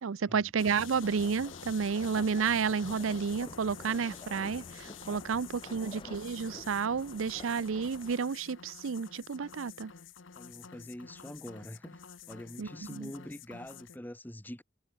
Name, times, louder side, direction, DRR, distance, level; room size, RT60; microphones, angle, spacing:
voice 1, 0.0-9.9 12.6-13.1, right 6 dB, 90° right, 0.5 m, -31 dB
sound 1, 0.6-14.0, left 7 dB, 70° left, 1.0 m, -49 dB
sound 2, 1.0-8.1, left 2 dB, 25° left, 0.6 m, -50 dB
voice 2, 10.3-12.0 12.3-14.6, equal, 10° left, 1.2 m, -45 dB
head